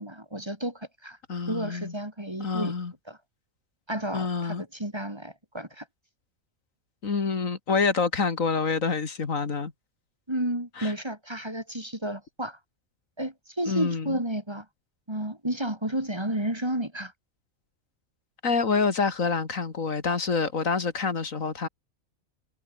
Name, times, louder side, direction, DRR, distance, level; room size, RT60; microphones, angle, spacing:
voice 1, 0.0-1.2 1.5-2.7 3.1-3.2 3.9-5.9 10.3-12.6 13.2-14.7 15.1-17.1, right 1 dB, 20° right, 3.5 m, -32 dB
voice 2, 1.3-1.9 2.4-2.9 4.1-4.6 7.0-9.7 10.8-10.9 13.7-14.2 18.4-21.7, left 5 dB, 75° left, 2.5 m, -27 dB
omnidirectional pair, 1.4 m